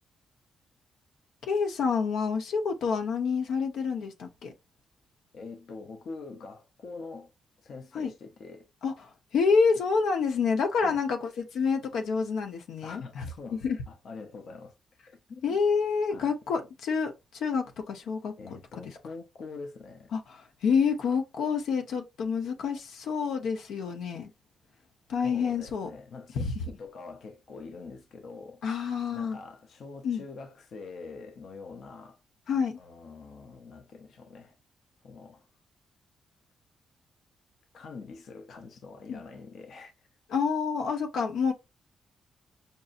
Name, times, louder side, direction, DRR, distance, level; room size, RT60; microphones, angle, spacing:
voice 1, 1.4-4.5 7.9-8.1 8.8-8.9 9.3-13.8 15.4-18.3 18.8-18.9 20.1-24.3 25.1-25.9 26.4-26.6 28.6-29.4 30.0-30.2 32.5-32.8 39.1-39.2 40.3-41.5, left 5 dB, 85° left, 0.8 m, -28 dB
voice 2, 5.3-7.3 7.6-8.7 10.7-11.0 12.8-14.8 15.1-15.6 16.1-16.3 18.4-20.1 25.2-28.6 29.1-32.2 32.8-34.6 35.0-35.5 37.7-40.1, left 4 dB, 55° left, 0.7 m, -44 dB
5.3 x 2.7 x 2.5 m
wide cardioid pair, 170°, 0 cm